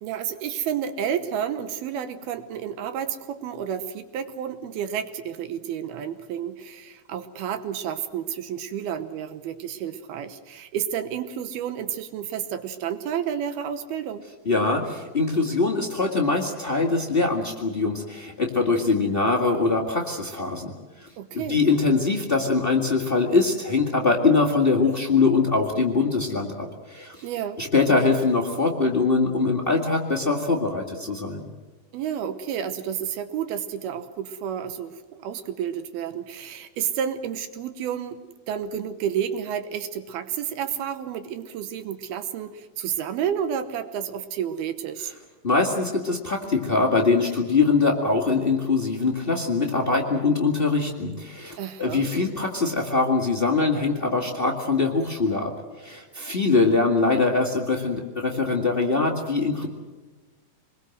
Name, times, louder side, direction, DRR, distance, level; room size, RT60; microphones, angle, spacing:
voice 1, 0.0-14.3 21.2-21.6 27.2-27.6 31.9-38.2 38.5-45.1 51.6-52.1, right 9 dB, 75° right, 10 dB, 2.8 m, -30 dB
voice 2, 14.4-21.1 21.3-27.2 27.6-31.5 45.4-55.5 55.8-59.7, left 3 dB, 85° left, 0 dB, 0.5 m, -23 dB
26.0 x 21.5 x 7.9 m, 1.3 s
omnidirectional pair, 4.9 m